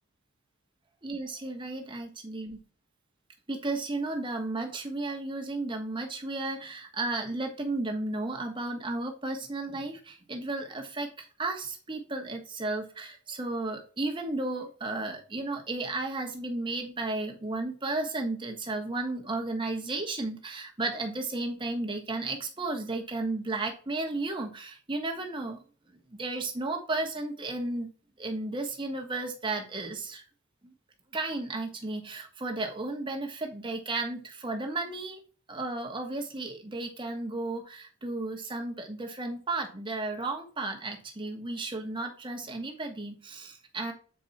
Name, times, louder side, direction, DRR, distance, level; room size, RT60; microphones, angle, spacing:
voice 1, 1.0-2.6 3.5-25.6 25.9-27.9 28.2-30.2 30.6-30.7 31.1-35.2 35.5-43.9, right 2 dB, 20° right, 2 dB, 1.2 m, -34 dB
7.7 x 4.6 x 4.2 m, 0.39 s
head